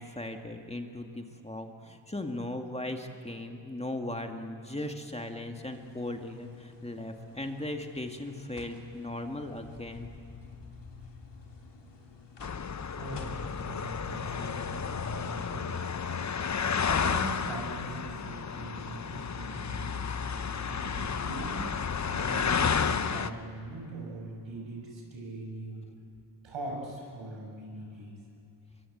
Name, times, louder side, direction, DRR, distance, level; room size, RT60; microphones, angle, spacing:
voice 1, 0.0-10.1, left 1 dB, 15° left, 4 dB, 2.1 m, -38 dB
sound 1, 5.5-17.9, left 5 dB, 65° left, 3.7 m, -50 dB
sound 2, 12.4-23.3, left 6 dB, 35° left, 0.9 m, -32 dB
voice 2, 12.9-16.4 16.7-21.6 22.1-25.9 26.4-28.1, right 2 dB, 80° right, 0 dB, 7.0 m, -41 dB
24.0 x 23.0 x 8.1 m, 2.5 s
cardioid pair, 65°, 46 cm